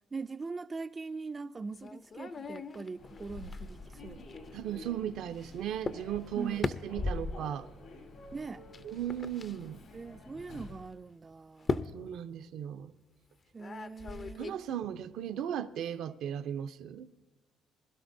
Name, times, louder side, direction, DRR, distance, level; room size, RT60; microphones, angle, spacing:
voice 1, 0.1-4.2 4.7-4.9 6.4-6.7 8.3-8.6 9.9-11.8 13.5-14.6, right 4 dB, 30° right, 0.3 m, -42 dB
sound 1, 1.7-4.6 5.4-5.5 5.8-6.0 6.3-7.5 8.7-9.6 10.4-10.5 11.6-12.0 13.6-14.5, left 3 dB, 45° left, 0.6 m, -37 dB
Human voice / Subway metro underground, 2.9-10.9, left 2 dB, 75° left, 3.2 m, -49 dB
voice 2, 4.5-7.7 8.8-9.8 11.9-12.9 14.4-17.1, right 10 dB, 85° right, 0.6 m, -36 dB
21.0 x 12.0 x 2.7 m
cardioid pair, 90°, 0 cm